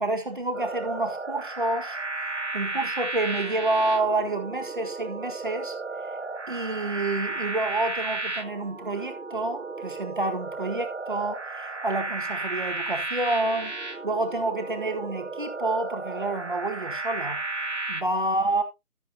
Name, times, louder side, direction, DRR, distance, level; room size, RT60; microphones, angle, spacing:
voice 1, 0.0-2.0 2.5-5.8 6.5-13.7 14.0-17.4 17.9-18.6, right 2 dB, 35° right, 1.8 m, -28 dB
sound 1, 0.5-18.0, right 3 dB, 50° right, 1.6 m, -34 dB
13.0 x 7.9 x 2.8 m
figure-of-eight pair, 180°, 44 cm